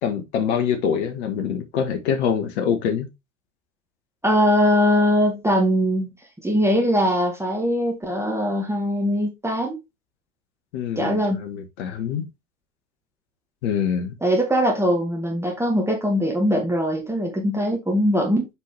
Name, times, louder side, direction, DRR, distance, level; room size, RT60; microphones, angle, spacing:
voice 1, 0.0-3.1 10.7-12.2 13.6-14.1, left 7 dB, 60° left, 1.5 m, -25 dB
voice 2, 4.2-6.1 6.4-9.8 11.0-11.4 14.2-18.5, equal, 5° right, 2.0 m, -21 dB
6.9 x 4.8 x 3.3 m
figure-of-eight pair, 75°, 38 cm